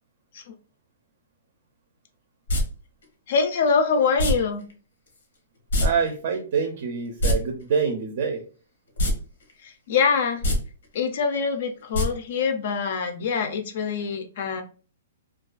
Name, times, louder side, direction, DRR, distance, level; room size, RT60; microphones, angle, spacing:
sound 1, 2.5-2.6 4.2-4.3 5.7-5.9 6.1-6.2 7.1-7.3 9.0-9.1 9.5-9.6 10.3-10.6 11.9-12.0 12.4-12.5, equal, 85° left, 0.8 m, -21 dB
voice 1, 3.3-4.6 9.9-10.4 10.9-14.6, left 5 dB, 55° left, 7 dB, 0.4 m, -24 dB
voice 2, 5.8-8.4, right 6 dB, 45° right, 4 dB, 0.4 m, -26 dB
2.3 x 2.2 x 2.4 m, 0.38 s
hypercardioid pair, 160°, 0 cm